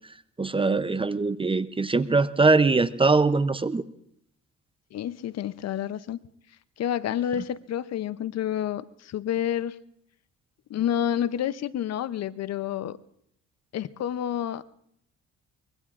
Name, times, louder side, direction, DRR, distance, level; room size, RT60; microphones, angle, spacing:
voice 1, 0.4-3.8, right 3 dB, 20° right, 14 dB, 0.5 m, -22 dB
voice 2, 4.9-6.2 6.8-9.8 10.7-13.0 13.7-14.6, left 10 dB, 60° left, 16 dB, 0.6 m, -29 dB
24.0 x 22.0 x 2.4 m, 0.73 s
cardioid pair, 90°, 30 cm